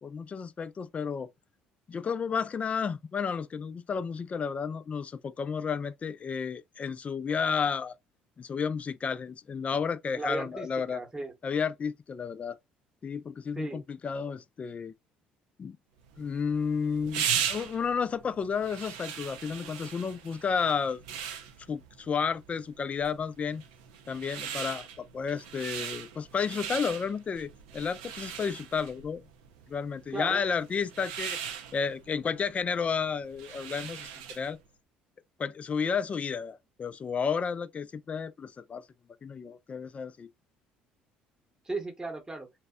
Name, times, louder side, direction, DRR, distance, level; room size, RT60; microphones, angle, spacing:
voice 1, 0.0-1.3 1.9-7.9 8.4-11.0 11.4-12.6 13.0-14.9 15.6-15.8 16.2-21.0 21.7-23.6 24.1-29.2 29.7-31.4 31.7-34.6 35.4-38.8 39.2-40.3, left 6 dB, 35° left, 0.3 m, -32 dB
voice 2, 10.2-11.3 13.6-13.8 30.1-30.4 41.6-42.5, right 2 dB, 15° right, 0.9 m, -36 dB
sound 1, 16.1-34.6, right 8 dB, 85° right, 0.4 m, -39 dB
2.6 x 2.1 x 2.3 m
hypercardioid pair, 70°, 4 cm